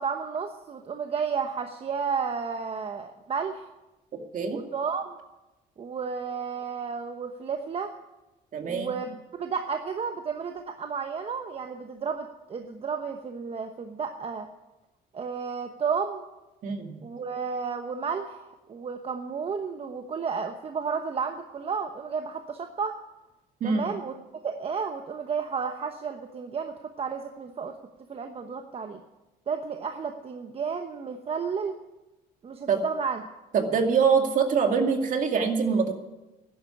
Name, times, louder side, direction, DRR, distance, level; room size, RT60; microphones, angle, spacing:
voice 1, 0.0-3.7 4.5-5.1 5.8-7.9 8.7-14.5 15.1-16.2 17.0-23.0 23.6-24.1 24.4-27.7 28.1-29.0 29.5-31.8 32.4-33.2, right 6 dB, 35° right, 6 dB, 1.0 m, -32 dB
voice 2, 8.5-8.9 16.6-17.0 23.6-23.9 32.7-32.8 33.5-35.9, right 5 dB, 50° right, 5 dB, 2.3 m, -24 dB
12.0 x 10.5 x 9.7 m, 1.0 s
cardioid pair, 115°, 17 cm